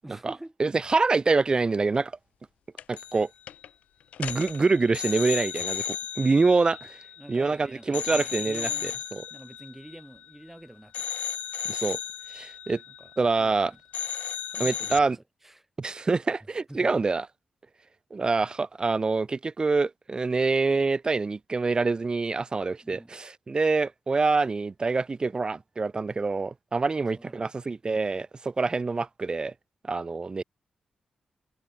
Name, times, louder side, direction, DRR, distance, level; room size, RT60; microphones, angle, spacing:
voice 1, 0.0-0.5 7.2-9.0 9.3-11.1 12.9-13.1 13.4-13.8 14.5-15.7 16.7-16.9 22.8-23.2 26.9-27.5, right 1 dB, 10° right, 7.9 m, -47 dB
voice 2, 0.6-2.1 2.9-3.3 4.2-7.0 7.3-9.2 11.7-12.0 12.3-12.8 13.2-13.7 14.6-15.2 15.8-17.3 18.1-29.5 29.8-30.4, right 3 dB, 40° right, 0.8 m, -26 dB
sound 1, 2.8-3.2 3.5-3.7 4.1-7.5 7.9-10.5 10.9-13.6 13.9-15.0, left 10 dB, 80° left, 0.4 m, -35 dB
supercardioid pair, 45°, 2 cm